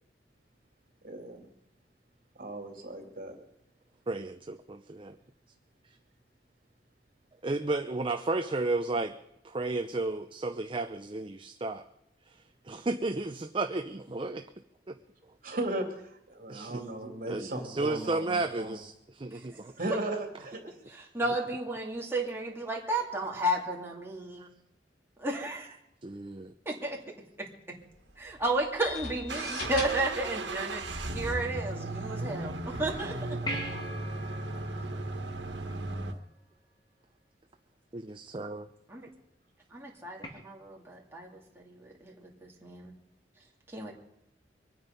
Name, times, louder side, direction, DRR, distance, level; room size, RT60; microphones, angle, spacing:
voice 1, 1.0-1.5 2.4-3.4 15.4-15.9 16.3-18.8 19.8-20.7, right 1 dB, 50° right, 2 dB, 2.9 m, -36 dB
voice 2, 4.1-5.2 7.4-9.1 9.4-11.8 12.3-12.4 12.6-14.5 14.9-15.0 16.5-16.8 17.3-19.7 24.4-24.5 26.0-26.5 37.9-38.7, right 2 dB, 30° right, 6 dB, 0.6 m, -33 dB
voice 3, 20.9-24.5 25.2-25.7 26.7-27.0 27.4-27.5 28.2-33.4 38.9-39.1 39.7-42.9 43.7-43.9, right 1 dB, 15° right, -2 dB, 2.5 m, -33 dB
sound 1, 28.3-36.1, right 2 dB, 85° right, 1.6 m, -36 dB
sound 2, 28.8-36.2, left 3 dB, 55° left, 3.6 m, -44 dB
sound 3, 33.5-36.2 40.2-40.3, equal, 25° left, 2.7 m, -41 dB
24.0 x 9.5 x 5.3 m, 0.82 s
head